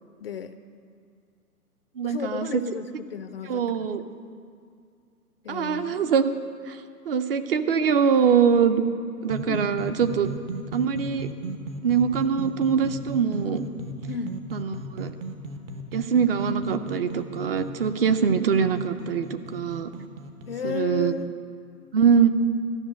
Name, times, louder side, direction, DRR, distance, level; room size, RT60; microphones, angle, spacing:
voice 1, 0.2-0.5 2.0-3.9 5.4-6.0 9.5-9.9 14.1-14.4 20.5-21.3, left 7 dB, 45° left, 11 dB, 0.4 m, -34 dB
voice 2, 2.0-2.6 3.4-4.0 5.5-6.3 6.7-6.8 7.1-8.8 9.2-10.3 10.7-11.3 11.8-13.6 14.5-15.1 15.9-19.9 20.6-21.1 21.9-22.3, right 7 dB, 40° right, 10 dB, 0.6 m, -23 dB
sound 1, 9.2-20.7, right 1 dB, 55° right, 1.3 m, -37 dB
13.5 x 6.3 x 9.2 m, 2.3 s
hypercardioid pair, 140°, 46 cm